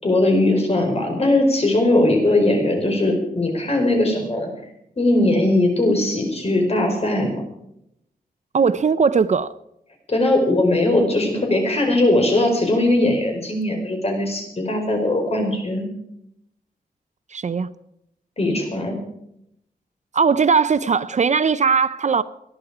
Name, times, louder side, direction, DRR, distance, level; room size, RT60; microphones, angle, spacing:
voice 1, 0.0-4.5 5.0-7.4 10.1-15.9 18.4-19.0, left 1 dB, 40° left, 4.6 m, -19 dB
voice 2, 8.5-9.5 17.3-17.7 20.1-22.2, right 5 dB, 50° right, 0.5 m, -19 dB
19.5 x 11.0 x 4.9 m
wide cardioid pair, 115°, 16 cm